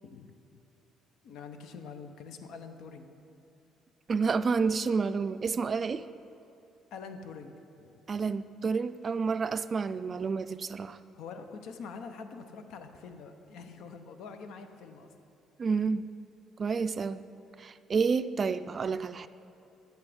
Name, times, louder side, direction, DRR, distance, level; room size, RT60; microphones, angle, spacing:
voice 1, 0.0-0.6 1.2-3.1 6.9-8.0 11.1-15.1, left 5 dB, 75° left, 8 dB, 0.8 m, -45 dB
voice 2, 4.1-6.1 8.1-11.0 15.6-16.1 16.6-17.2 17.6-19.3, right 5 dB, 40° right, 13 dB, 0.3 m, -29 dB
11.0 x 8.2 x 5.0 m, 2.7 s
cardioid pair, 95°, 0 cm